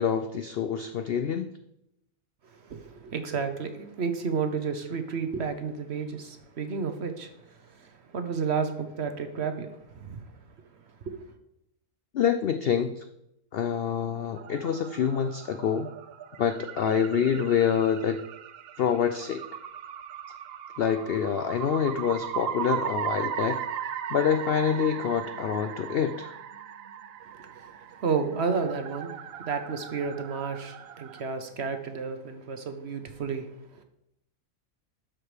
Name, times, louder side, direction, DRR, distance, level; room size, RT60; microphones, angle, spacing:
voice 1, 0.0-1.5 12.1-13.1 13.5-15.9 16.4-18.2 18.8-19.4 20.8-23.6 24.1-26.3, left 8 dB, 75° left, 9 dB, 0.5 m, -26 dB
voice 2, 2.6-10.3 11.0-11.2 27.3-29.1 29.4-33.5, right 5 dB, 50° right, 7 dB, 0.9 m, -32 dB
sound 1, 14.3-31.2, right 9 dB, 70° right, 0.6 m, -38 dB
12.0 x 4.8 x 5.0 m, 0.82 s
omnidirectional pair, 1.6 m